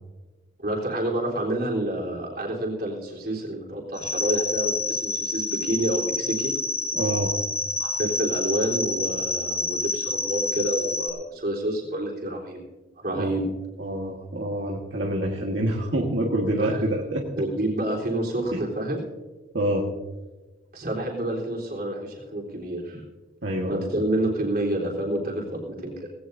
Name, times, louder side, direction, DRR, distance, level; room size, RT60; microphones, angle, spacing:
voice 1, 0.6-6.5 7.8-12.6 13.0-13.4 16.6-16.8 17.4-19.0 20.7-23.0 23.7-25.9, right 1 dB, 50° right, -1 dB, 3.7 m, -28 dB
sound 1, 4.0-11.1, left 3 dB, 15° left, 1.5 m, -28 dB
voice 2, 6.9-7.3 13.1-13.4 13.8-17.4 18.5-18.6 19.5-19.8 23.4-23.9, right 1 dB, 80° right, -1 dB, 1.5 m, -26 dB
18.0 x 16.5 x 2.7 m, 1.2 s
head